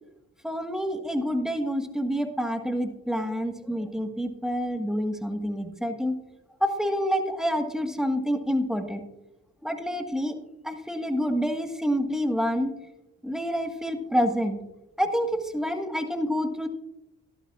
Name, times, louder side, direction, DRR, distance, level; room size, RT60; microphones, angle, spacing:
voice 1, 0.4-6.1 6.6-9.0 9.6-10.3 10.6-12.7 13.2-14.6 15.0-16.7, equal, ahead, 6 dB, 1.4 m, -27 dB
12.5 x 11.5 x 2.4 m, 0.89 s
supercardioid pair, 45°, 36 cm